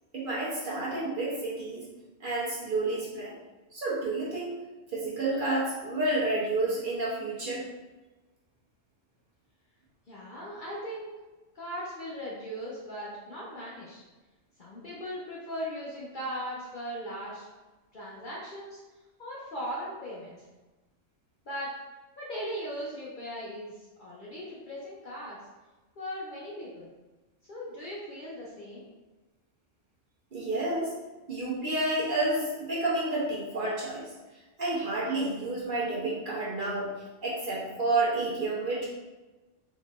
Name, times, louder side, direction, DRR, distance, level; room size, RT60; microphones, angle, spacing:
voice 1, 0.1-1.8 2.2-3.3 3.7-4.6 4.9-7.6 30.3-30.9 31.3-34.0 34.6-36.9 37.2-38.9, right 2 dB, 45° right, -7 dB, 0.9 m, -30 dB
voice 2, 10.1-11.1 11.5-14.0 14.6-17.5 17.9-18.8 19.2-20.4 21.5-21.7 22.2-25.4 26.0-26.9 27.5-28.8, equal, 50° left, -6 dB, 0.7 m, -38 dB
3.6 x 3.0 x 2.4 m, 1.2 s
omnidirectional pair, 1.3 m